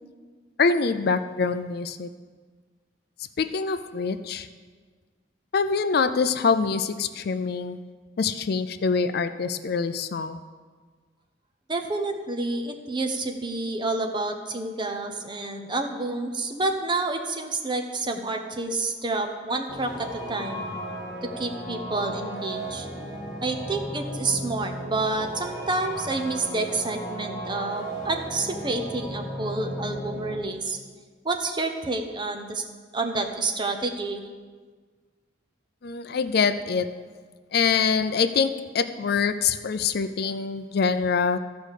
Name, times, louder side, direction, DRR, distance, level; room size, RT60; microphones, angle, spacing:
voice 1, 0.6-2.1 3.4-4.5 5.5-7.8 8.2-10.4 35.8-36.9 37.5-41.4, left 5 dB, 55° left, 11 dB, 0.4 m, -24 dB
voice 2, 11.7-20.6 21.2-22.9 23.4-30.8 31.2-32.6 32.9-34.2, right 2 dB, 25° right, 5 dB, 0.8 m, -29 dB
sound 1, 19.7-30.4, right 1 dB, 20° left, 1.9 m, -35 dB
13.0 x 5.1 x 6.5 m, 1.5 s
head